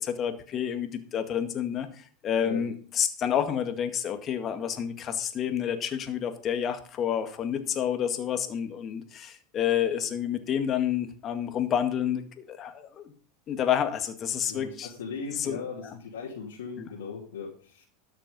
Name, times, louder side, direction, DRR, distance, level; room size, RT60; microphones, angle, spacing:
voice 1, 0.0-13.1 13.5-14.9 15.4-15.9 16.8-16.9, left 9 dB, 40° left, 9 dB, 1.9 m, -29 dB
voice 2, 14.5-17.9, left 5 dB, 90° left, -5 dB, 3.1 m, -38 dB
12.5 x 6.8 x 5.5 m, 0.42 s
hypercardioid pair, 105°, 0 cm